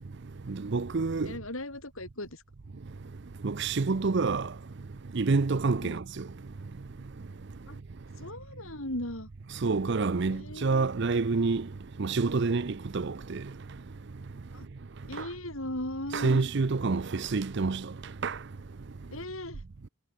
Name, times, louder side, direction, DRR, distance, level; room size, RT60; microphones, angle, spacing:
voice 1, 0.5-1.3 3.4-4.5 5.1-6.2 9.6-11.6 12.0-13.4 16.1-17.8 18.2-18.4, right 4 dB, 55° right, 0.6 m, -27 dB
voice 2, 1.2-2.4 5.8-6.0 7.7-7.8 8.2-9.3 10.3-10.7 14.5-14.6 15.1-16.4 19.1-19.6, left 1 dB, 75° left, 7.7 m, -37 dB
head